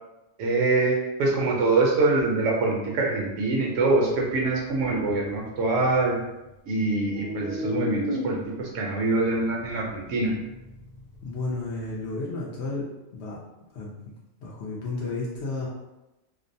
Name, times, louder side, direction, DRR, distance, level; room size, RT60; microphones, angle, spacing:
voice 1, 0.4-6.2 6.7-10.3, right 3 dB, 70° right, -2 dB, 0.9 m, -24 dB
sound 1, 3.9-6.5 6.9-12.1, left 2 dB, 90° left, 1.0 m, -37 dB
voice 2, 11.2-13.4 13.7-14.0 14.4-15.7, left 3 dB, 65° left, -4 dB, 0.7 m, -32 dB
2.5 x 2.0 x 2.6 m, 0.99 s
omnidirectional pair, 1.4 m